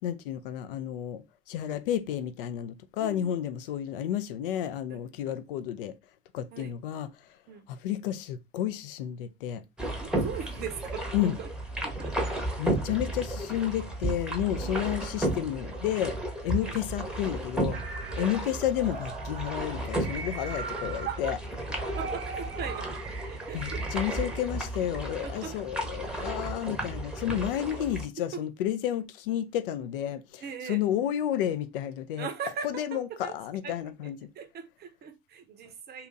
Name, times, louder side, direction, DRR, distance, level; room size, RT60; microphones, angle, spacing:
voice 1, 0.0-5.9 6.3-7.1 7.7-9.6 11.1-11.4 12.6-16.1 16.4-17.8 18.2-21.4 23.5-32.3 32.6-34.3, left 11 dB, 60° left, 0.4 m, -31 dB
voice 2, 3.0-3.3 4.9-5.4 6.5-6.7 7.5-7.7 10.0-11.5 11.8-12.4 14.6-14.9 16.6-16.8 18.1-18.3 21.0-21.3 22.0-22.9 23.3-24.1 25.2-25.5 28.3-28.4 30.4-30.8 32.2-33.3 33.6-33.8 34.0-34.1 34.3-36.1, right 7 dB, 30° right, 0.6 m, -40 dB
sound 1, 9.8-28.0, right 1 dB, 5° right, 0.8 m, -33 dB
sound 2, 17.7-24.5, right 4 dB, 70° right, 0.7 m, -40 dB
2.8 x 2.4 x 3.8 m
figure-of-eight pair, 65°, 31 cm